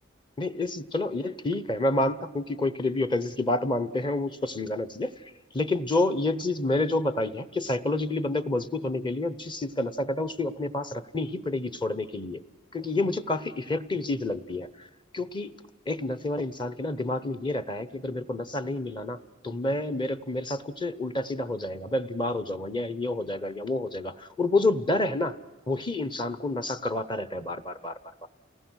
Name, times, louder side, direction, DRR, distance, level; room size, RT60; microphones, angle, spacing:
voice 1, 0.4-5.1 5.5-12.4 12.7-14.7 15.1-15.5 15.9-19.2 19.4-25.4 25.7-28.3, left 2 dB, 25° left, 13 dB, 0.9 m, -29 dB
29.0 x 19.0 x 6.3 m, 1.2 s
head